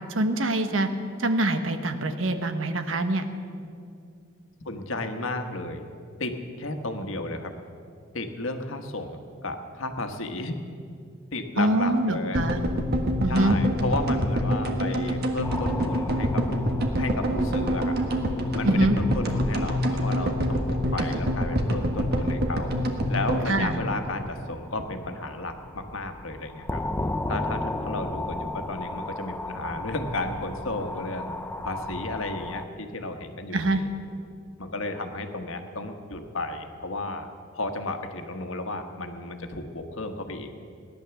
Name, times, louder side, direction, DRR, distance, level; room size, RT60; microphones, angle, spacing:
voice 1, 0.1-0.9 1.2-3.3 11.6-12.6 13.2-13.6 18.6-19.0 23.5-23.8 33.5-33.8, right 1 dB, 75° right, 8 dB, 1.1 m, -24 dB
voice 2, 4.6-5.9 6.2-7.5 8.1-10.6 11.3-12.4 13.3-16.4 17.0-18.0 18.5-22.7 23.1-26.8 27.3-31.3 31.6-33.9 34.6-37.3 37.5-40.5, left 2 dB, 85° left, 6 dB, 1.4 m, -33 dB
sound 1, 12.3-24.6 24.8-24.9 25.1-25.2, equal, 50° right, 1.4 m, -26 dB
sound 2, 15.4-32.7, left 2 dB, 10° left, 0.4 m, -36 dB
17.5 x 11.0 x 7.0 m, 2.4 s
head